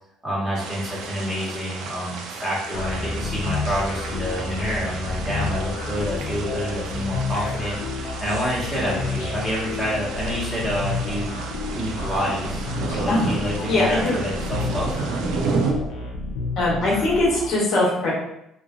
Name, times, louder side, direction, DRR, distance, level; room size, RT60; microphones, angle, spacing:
voice 1, 0.2-11.4 11.7-12.6 12.9-15.0, equal, 5° right, -8 dB, 1.3 m, -28 dB
sound 1, 0.5-15.7, right 4 dB, 80° right, 0.4 m, -32 dB
sound 2, 2.7-17.5, left 3 dB, 75° left, 0.6 m, -30 dB
voice 2, 13.7-14.2 16.6-18.1, left 2 dB, 55° left, -4 dB, 1.2 m, -21 dB
3.1 x 2.5 x 2.5 m, 0.81 s
cardioid pair, 125°, 0 cm